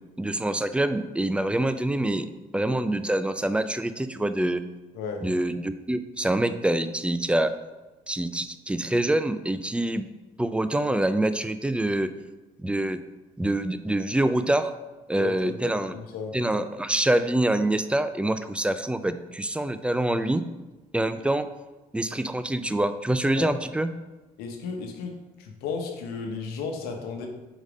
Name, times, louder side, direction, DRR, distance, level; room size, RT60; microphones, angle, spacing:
voice 1, 0.2-2.3 2.5-4.6 5.2-7.5 8.1-10.1 10.4-12.1 12.6-13.0 13.4-14.7 15.1-15.9 16.3-20.5 20.9-21.5 21.9-23.9, right 1 dB, 5° right, 11 dB, 0.3 m, -25 dB
voice 2, 4.9-5.2 15.2-16.4 23.4-23.5 24.4-27.3, left 5 dB, 85° left, 3 dB, 1.0 m, -34 dB
4.7 x 4.1 x 5.2 m, 1.2 s
cardioid pair, 90°, 16 cm